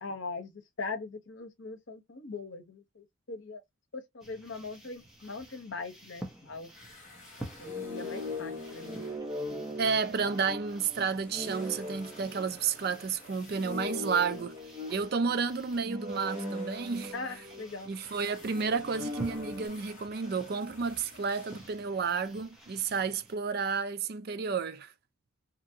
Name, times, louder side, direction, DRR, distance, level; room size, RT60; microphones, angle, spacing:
voice 1, 0.0-3.6 3.9-6.7 7.6-9.1 17.1-17.9, left 3 dB, 65° left, 0.8 m, -41 dB
sound 1, 4.2-23.3, right 1 dB, 5° right, 0.8 m, -50 dB
sound 2, 6.7-10.8 11.1-21.9, left 2 dB, 40° left, 1.3 m, -55 dB
sound 3, 7.6-13.1 13.5-18.1 18.5-19.7, left 1 dB, 20° right, 1.1 m, -40 dB
voice 2, 9.8-14.5 14.9-17.1 17.9-24.9, right 5 dB, 50° right, 0.4 m, -31 dB
2.9 x 2.6 x 2.6 m
head